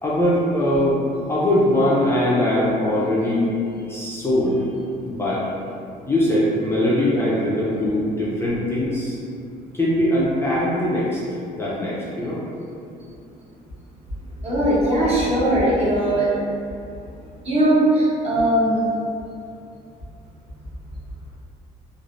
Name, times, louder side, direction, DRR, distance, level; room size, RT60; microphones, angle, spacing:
voice 1, 0.0-4.7 5.0-5.5 6.1-9.2 9.7-11.2 11.6-12.4, left 1 dB, 15° left, -7 dB, 0.5 m, -21 dB
voice 2, 14.4-16.3 17.4-18.8, right 1 dB, 40° right, -8 dB, 1.0 m, -19 dB
3.1 x 2.4 x 2.6 m, 2.5 s
cardioid pair, 110°, 17 cm